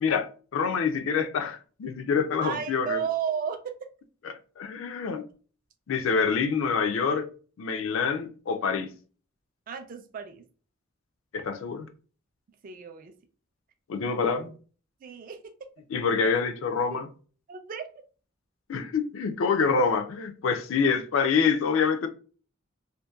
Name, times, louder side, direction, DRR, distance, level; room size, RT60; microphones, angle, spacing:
voice 1, 0.0-3.0 4.2-5.2 5.9-7.3 7.6-8.9 11.3-11.9 13.9-14.5 15.9-17.1 18.7-22.1, left 5 dB, 70° left, 0.4 m, -26 dB
voice 2, 2.4-3.9 9.7-10.5 12.6-13.1 15.0-15.7 16.9-17.0 17.5-17.8, right 7 dB, 45° right, 0.3 m, -33 dB
2.7 x 2.1 x 2.2 m
head